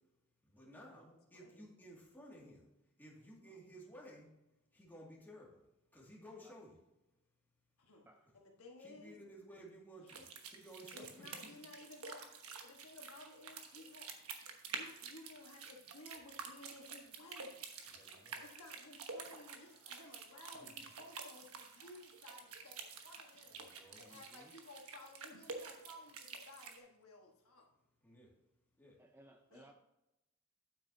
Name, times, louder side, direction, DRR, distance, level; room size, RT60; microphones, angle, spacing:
voice 1, 0.4-2.7 3.0-4.3 4.7-5.6 5.9-6.8 8.8-11.1 11.4-11.6 17.8-18.4 20.5-20.7 23.6-24.0 28.0-28.3 28.8-29.0, equal, 10° left, -4 dB, 2.2 m, -56 dB
voice 2, 1.3-1.6 3.5-3.6 7.8-8.1 8.3-9.2 10.0-10.2 10.9-14.1 14.6-17.6 18.4-23.6 24.0-27.7 29.5-29.7, left 2 dB, 65° left, 1 dB, 1.4 m, -57 dB
sound 1, 10.1-26.8, right 5 dB, 70° right, 1.2 m, -50 dB
voice 3, 23.9-24.5 29.0-29.7, right 1 dB, 10° right, 4 dB, 0.4 m, -62 dB
9.2 x 8.1 x 2.8 m, 0.93 s
head